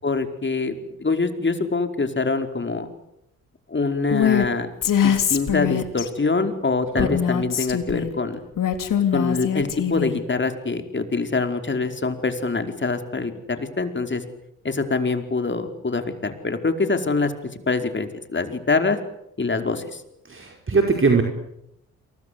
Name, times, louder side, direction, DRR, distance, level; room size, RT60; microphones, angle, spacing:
voice 1, 0.0-2.9 3.7-4.7 5.0-8.4 9.1-14.2 14.6-17.3 17.7-19.0 19.4-20.0, left 3 dB, 30° left, 7 dB, 4.9 m, -24 dB
Female speech woman speaking, 4.1-4.5 4.8-6.1 7.0-8.1 8.6-10.2, left 8 dB, 65° left, 3.5 m, -22 dB
voice 2, 20.3-21.2, right 4 dB, 35° right, 3 dB, 5.1 m, -20 dB
30.0 x 23.5 x 8.5 m, 0.81 s
supercardioid pair, 55°, 35 cm